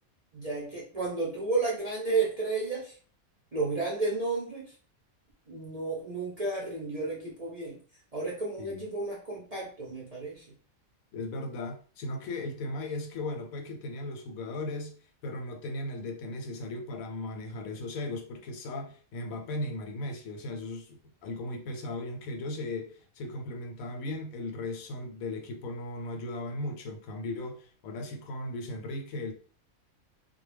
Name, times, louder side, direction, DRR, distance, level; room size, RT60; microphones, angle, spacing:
voice 1, 0.3-3.0 3.5-4.7 5.5-7.8 8.1-10.4, right 3 dB, 40° right, 0.6 m, -32 dB
voice 2, 11.1-14.9 15.2-29.3, left 2 dB, 90° left, 1.0 m, -37 dB
2.2 x 2.1 x 3.2 m
omnidirectional pair, 1.4 m